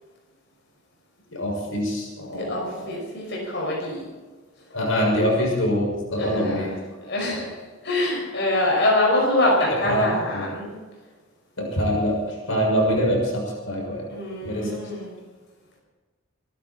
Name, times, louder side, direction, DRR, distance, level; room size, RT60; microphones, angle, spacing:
voice 1, 1.3-2.9 4.7-6.8 7.3-7.5 9.9-10.1 10.3-10.4 11.6-14.0 14.4-14.8, equal, 85° left, -1 dB, 6.3 m, -24 dB
voice 2, 2.3-4.0 6.2-6.7 7.0-7.5 7.8-10.7 14.1-15.1, left 1 dB, 60° left, -3 dB, 5.7 m, -24 dB
26.0 x 12.0 x 4.4 m, 1.3 s
head